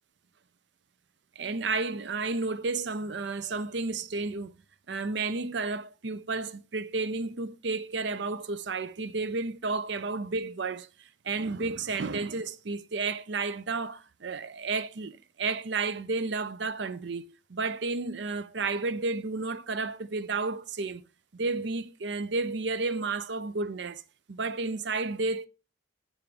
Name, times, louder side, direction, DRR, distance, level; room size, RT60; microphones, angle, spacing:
voice 1, 1.4-4.5 4.9-10.9 11.2-21.0 21.3-24.0 24.3-25.5, right 3 dB, 65° right, 0.6 m, -32 dB
8.3 x 3.6 x 5.1 m
head